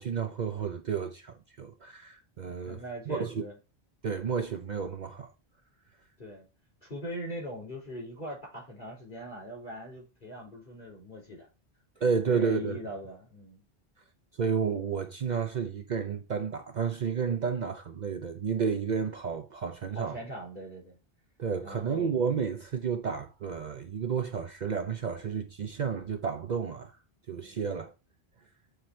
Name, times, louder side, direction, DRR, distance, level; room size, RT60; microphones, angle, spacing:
voice 1, 0.0-3.4 4.0-5.3 12.0-12.8 14.4-20.2 21.4-26.9 27.3-27.9, right 6 dB, 55° right, 0.6 m, -31 dB
voice 2, 2.5-3.5 6.2-6.5 6.8-11.5 12.2-13.6 19.9-21.0 21.6-22.3, equal, 50° left, 4.2 m, -41 dB
7.8 x 3.2 x 4.3 m
omnidirectional pair, 1.0 m